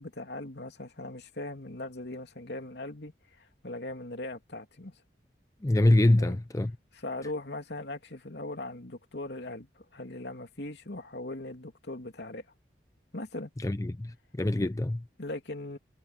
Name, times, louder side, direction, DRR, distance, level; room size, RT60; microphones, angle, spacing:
voice 1, 0.0-4.9 6.2-6.4 6.9-12.4 13.1-13.5 14.6-14.7 15.2-15.8, left 2 dB, 70° left, 2.8 m, -39 dB
voice 2, 5.6-6.7 13.6-15.0, left 1 dB, 20° left, 0.4 m, -24 dB
head